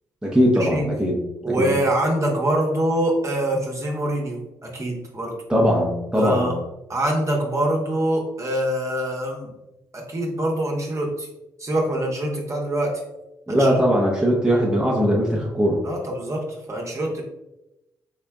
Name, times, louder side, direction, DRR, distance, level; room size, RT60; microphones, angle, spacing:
voice 1, 0.2-1.2 1.6-1.7 5.5-6.5 13.5-15.8, equal, 10° right, -3 dB, 0.8 m, -20 dB
voice 2, 1.4-5.3 6.1-6.6 6.9-9.5 9.9-11.3 11.6-13.0 13.5-13.8 15.8-17.2, right 1 dB, 35° right, -1 dB, 1.0 m, -24 dB
3.8 x 3.4 x 2.3 m, 0.94 s
hypercardioid pair, 50°, 9 cm